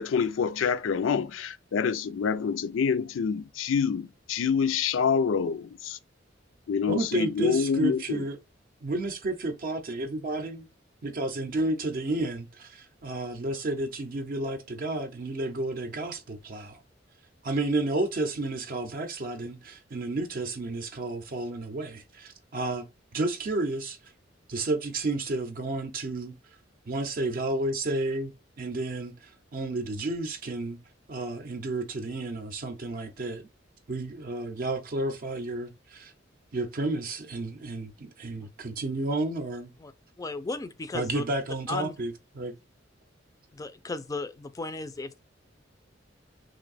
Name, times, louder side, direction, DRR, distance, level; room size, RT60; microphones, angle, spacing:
voice 1, 0.0-6.0 6.7-8.3, left 6 dB, 90° left, 0.4 m, -27 dB
voice 2, 6.9-8.4 8.8-10.7 11.0-16.8 17.4-22.8 23.1-24.0 24.5-26.3 26.9-28.3 28.6-30.8 31.1-33.5 33.9-36.1 36.5-39.7 40.9-42.5, right 2 dB, 50° right, 0.5 m, -31 dB
voice 3, 40.2-41.2 41.7-42.0 43.5-45.2, left 3 dB, 20° left, 0.3 m, -35 dB
3.0 x 2.6 x 4.0 m
head